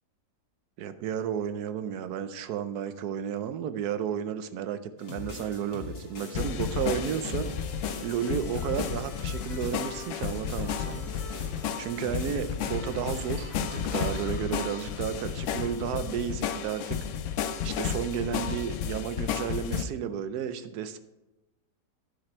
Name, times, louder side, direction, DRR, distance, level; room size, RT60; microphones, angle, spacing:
voice 1, 0.8-7.5 8.0-11.0 11.8-17.0 17.6-21.0, right 8 dB, 70° right, 11 dB, 1.1 m, -32 dB
sound 1, 5.0-16.1, left 3 dB, 85° left, 2.6 m, -43 dB
sound 2, 6.3-19.8, left 8 dB, 70° left, 0.7 m, -33 dB
11.5 x 5.9 x 4.4 m, 1.0 s
omnidirectional pair, 1.9 m